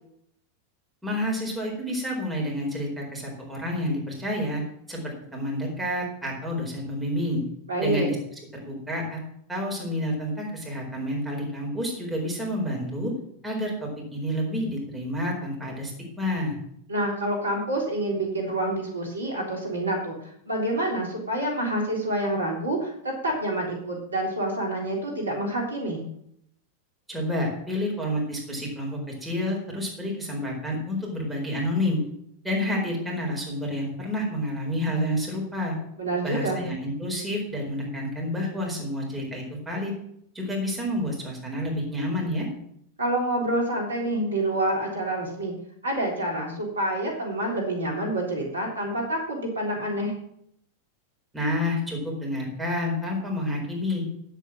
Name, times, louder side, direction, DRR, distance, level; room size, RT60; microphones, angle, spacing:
voice 1, 1.0-4.6 4.9-7.4 7.8-8.2 8.5-9.2 9.5-13.1 13.4-16.6 27.1-32.0 32.4-35.7 36.2-39.9 40.3-42.5 51.3-54.0, left 1 dB, 5° right, -2 dB, 4.5 m, -29 dB
voice 2, 7.7-8.1 16.9-26.0 36.0-36.6 43.0-45.5 45.8-50.1, right 1 dB, 75° right, -1 dB, 3.4 m, -27 dB
9.9 x 8.2 x 6.2 m, 0.72 s
figure-of-eight pair, 90°, 0 cm